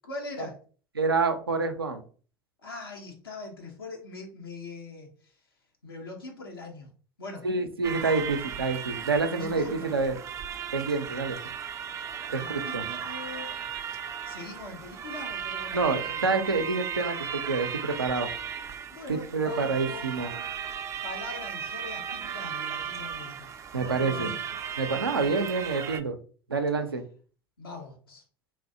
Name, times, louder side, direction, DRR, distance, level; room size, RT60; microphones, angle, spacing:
voice 1, 0.0-0.6 2.6-5.3 5.8-6.9 7.2-7.5 9.2-9.9 12.3-13.6 14.2-16.3 18.9-20.5 21.0-24.4 27.6-28.2, left 2 dB, 80° left, 0 dB, 0.7 m, -42 dB
voice 2, 1.0-2.0 7.4-10.2 10.7-11.4 12.3-12.8 15.7-18.3 19.1-20.3 23.7-24.3 24.8-26.2 26.5-27.0, right 4 dB, 90° right, 6 dB, 0.5 m, -27 dB
sound 1, 7.8-26.0, right 8 dB, 25° right, 0.3 m, -36 dB
3.5 x 2.6 x 2.6 m, 0.40 s
figure-of-eight pair, 75°, 12 cm